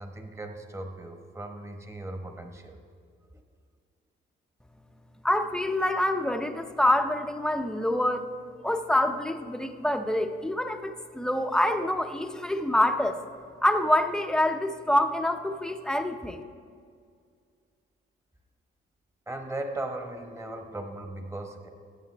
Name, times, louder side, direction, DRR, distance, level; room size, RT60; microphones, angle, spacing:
voice 1, 0.0-2.8 5.9-6.0 11.6-11.7 19.3-21.7, right 2 dB, 15° right, 4 dB, 1.2 m, -38 dB
voice 2, 5.2-8.3 8.6-13.2 13.6-16.4, left 1 dB, 5° left, 7 dB, 0.6 m, -26 dB
14.5 x 8.7 x 3.3 m, 2.2 s
cardioid pair, 90°, 20 cm